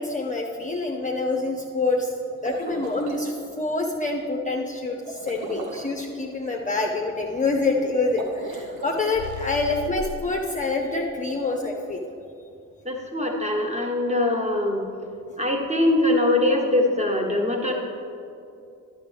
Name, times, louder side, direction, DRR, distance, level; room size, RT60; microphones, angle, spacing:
voice 1, 0.0-2.1 2.4-12.0, left 3 dB, 20° left, 0 dB, 0.8 m, -26 dB
sound 1, 2.3-3.2 5.0-5.9 8.0-9.1, right 2 dB, 65° right, 1.2 m, -37 dB
sound 2, 9.1-10.4, left 8 dB, 50° left, 0.5 m, -36 dB
voice 2, 12.8-14.8 15.4-17.7, left 1 dB, 15° right, 1 dB, 1.5 m, -22 dB
11.0 x 6.9 x 3.5 m, 2.6 s
hypercardioid pair, 40°, 41 cm